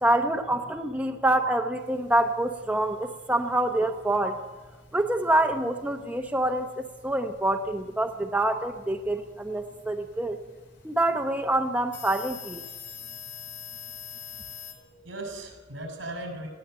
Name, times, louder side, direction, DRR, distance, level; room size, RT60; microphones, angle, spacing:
voice 1, 0.0-4.4 4.9-10.4 10.8-12.6, right 1 dB, 10° right, 4 dB, 0.8 m, -26 dB
sound 1, 1.8-14.7, left 8 dB, 60° left, 3.9 m, -47 dB
voice 2, 14.6-16.5, right 1 dB, 70° right, 4 dB, 6.1 m, -38 dB
20.0 x 16.0 x 7.9 m, 1.3 s
head